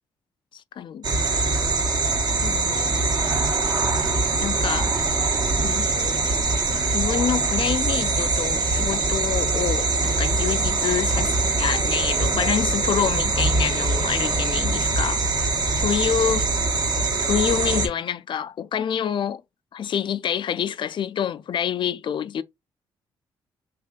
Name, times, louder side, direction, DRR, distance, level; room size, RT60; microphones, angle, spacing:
voice 1, 0.8-1.1 2.4-3.5 4.4-4.9 5.6-6.2 6.9-15.2 15.8-16.4 17.2-19.4 19.7-22.4, left 8 dB, 55° left, 0.4 m, -27 dB
sound 1, 1.0-17.9, right 3 dB, 45° right, 1.1 m, -23 dB
3.1 x 2.5 x 3.8 m
supercardioid pair, 65°, 10 cm